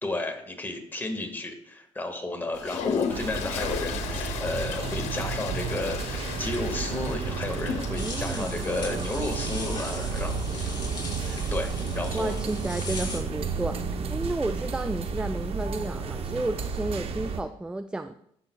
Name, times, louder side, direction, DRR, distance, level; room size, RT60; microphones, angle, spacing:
voice 1, 0.0-10.4 11.2-12.4, left 2 dB, 15° left, 3 dB, 1.6 m, -33 dB
Toilet flush, 2.5-8.4, left 7 dB, 90° left, 0.7 m, -34 dB
sound 1, 3.1-17.4, right 5 dB, 60° right, 0.8 m, -32 dB
sound 2, 8.0-13.2, left 3 dB, 40° left, 3.5 m, -39 dB
voice 2, 8.0-8.7 12.1-18.2, right 2 dB, 10° right, 10 dB, 0.3 m, -32 dB
13.5 x 5.7 x 2.3 m, 0.69 s
cardioid pair, 75°, 11 cm